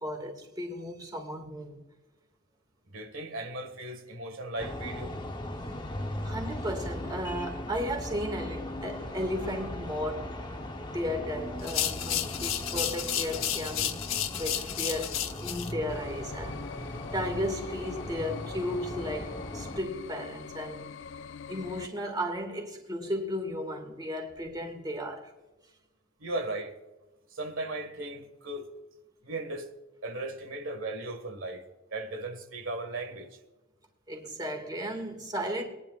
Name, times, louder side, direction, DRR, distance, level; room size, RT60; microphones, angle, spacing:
voice 1, 0.0-1.8 6.2-10.4 10.9-20.8 21.5-25.3 34.1-35.6, equal, 20° right, 2.0 m, -35 dB
voice 2, 2.9-5.2 26.2-26.8 27.3-28.7 29.2-29.7 30.0-31.7 31.9-33.4, right 2 dB, 80° right, 1.7 m, -37 dB
sound 1, 4.6-19.8, left 1 dB, 20° left, 0.9 m, -38 dB
sound 2, 11.6-15.7, left 10 dB, 85° left, 1.0 m, -32 dB
sound 3, 15.9-21.9, left 6 dB, 65° left, 0.4 m, -43 dB
22.0 x 10.0 x 2.4 m
head